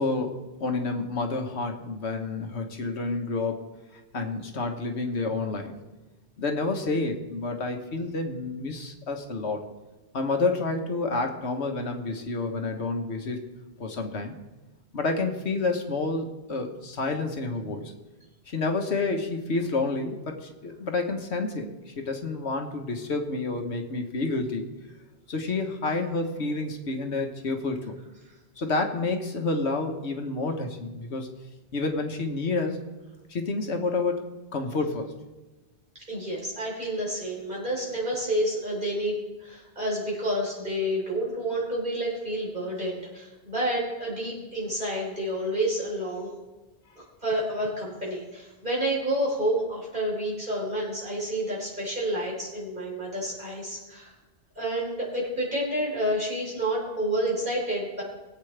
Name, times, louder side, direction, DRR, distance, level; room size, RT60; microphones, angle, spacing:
voice 1, 0.0-3.6 4.1-5.7 6.4-9.6 10.1-13.5 13.8-14.3 14.9-17.9 18.5-24.7 25.3-28.0 28.6-31.3 31.7-32.8 33.3-35.1, left 3 dB, 80° left, 4 dB, 1.5 m, -29 dB
voice 2, 36.1-46.3 47.0-54.1 54.6-58.0, right 1 dB, 50° right, -4 dB, 4.2 m, -29 dB
21.0 x 8.2 x 3.4 m, 1.1 s
omnidirectional pair, 1.1 m